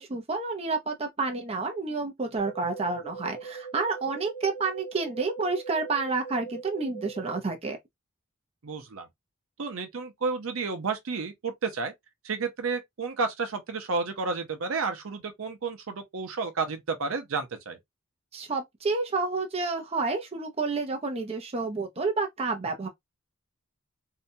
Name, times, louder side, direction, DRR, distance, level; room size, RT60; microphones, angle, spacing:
voice 1, 0.0-7.8 18.3-22.9, right 3 dB, 30° right, 0.6 m, -30 dB
sound 1, 2.4-7.4, right 5 dB, 30° left, 1.2 m, -41 dB
voice 2, 8.6-9.1 9.6-11.9 12.2-17.8, right 4 dB, 75° right, 0.7 m, -31 dB
2.7 x 2.2 x 2.6 m
head